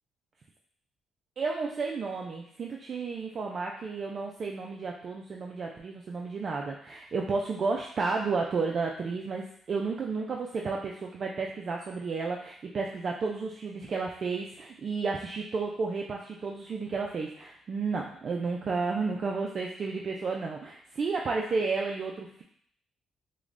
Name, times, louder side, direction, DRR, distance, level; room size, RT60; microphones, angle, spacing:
voice 1, 1.4-22.4, right 4 dB, 50° right, 0 dB, 0.3 m, -32 dB
4.8 x 2.1 x 2.4 m, 0.64 s
cardioid pair, 90°, 0 cm